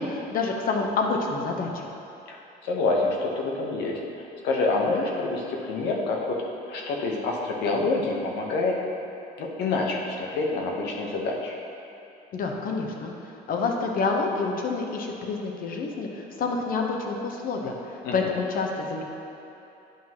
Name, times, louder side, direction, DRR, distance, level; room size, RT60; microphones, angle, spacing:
voice 1, 0.0-1.9 12.3-13.1 13.5-19.0, left 4 dB, 55° left, 1 dB, 1.0 m, -28 dB
voice 2, 2.3-4.0 4.4-6.4 6.7-8.7 9.4-11.5 18.0-18.3, left 3 dB, 85° left, -1 dB, 1.0 m, -27 dB
10.0 x 5.8 x 3.0 m, 2.9 s
cardioid pair, 110°, 17 cm